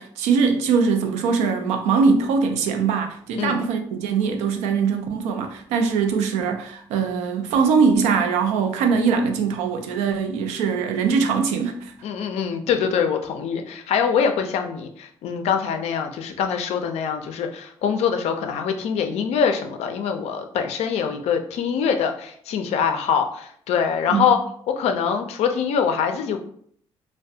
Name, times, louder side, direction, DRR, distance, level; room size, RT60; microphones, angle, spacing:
voice 1, 0.0-11.9 24.1-24.3, right 5 dB, 85° right, 0.4 m, -22 dB
voice 2, 12.0-24.4 24.7-26.4, left 7 dB, 70° left, 0.4 m, -24 dB
2.3 x 2.1 x 2.6 m
supercardioid pair, 65°, 11 cm